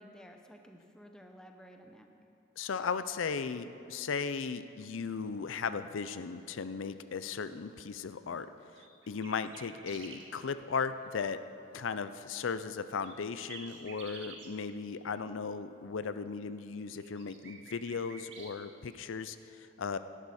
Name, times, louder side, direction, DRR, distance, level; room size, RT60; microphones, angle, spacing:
voice 1, 0.0-2.1, equal, 5° left, 3 dB, 0.7 m, -53 dB
voice 2, 2.6-8.5 9.1-11.4 11.7-20.0, left 5 dB, 85° left, 12 dB, 0.5 m, -36 dB
sound 1, 8.8-10.3 13.0-14.5 16.8-18.6, right 4 dB, 75° right, 1.7 m, -49 dB
17.0 x 11.5 x 4.3 m, 2.9 s
head